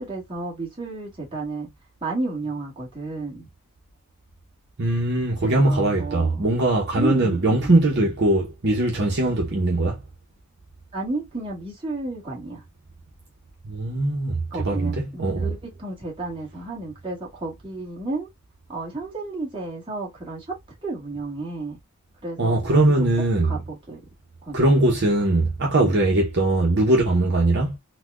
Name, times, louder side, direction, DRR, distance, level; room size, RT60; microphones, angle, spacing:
voice 1, 0.0-1.7 2.0-3.5 5.4-6.4 7.0-7.7 10.9-12.6 14.5-18.3 18.7-20.5 20.8-21.8 22.2-22.8 23.4-24.0 24.4-24.6, right 3 dB, 25° right, 1.5 m, -32 dB
voice 2, 4.8-10.0 13.6-15.5 22.4-23.6 24.5-27.8, right 2 dB, 50° right, 0.9 m, -21 dB
4.1 x 2.2 x 2.4 m
head